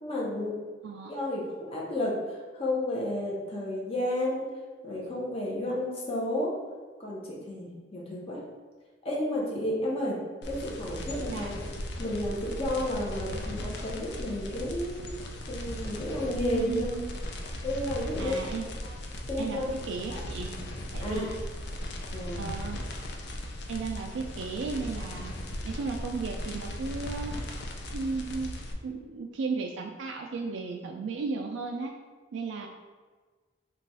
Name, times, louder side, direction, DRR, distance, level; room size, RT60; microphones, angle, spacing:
voice 1, 0.0-0.6 1.1-4.4 4.8-6.5 7.0-8.4 9.0-10.2 10.4-11.7 12.0-15.0 15.5-16.9 17.6-18.4 18.8-18.9 19.3-19.8 20.1-20.2 21.0-21.3 22.1-22.5, left 1 dB, 30° left, -3 dB, 0.7 m, -32 dB
voice 2, 0.8-1.1 11.2-11.5 16.5-17.1 18.2-18.7 19.4-20.5 20.9-21.3 22.4-22.8 23.7-25.3 25.6-27.4 27.9-28.5 28.8-31.9 32.3-32.7, right 4 dB, 90° right, 2 dB, 0.3 m, -34 dB
sound 1, 10.4-28.7, left 1 dB, 65° left, 0.4 m, -37 dB
3.0 x 2.3 x 4.0 m, 1.4 s
head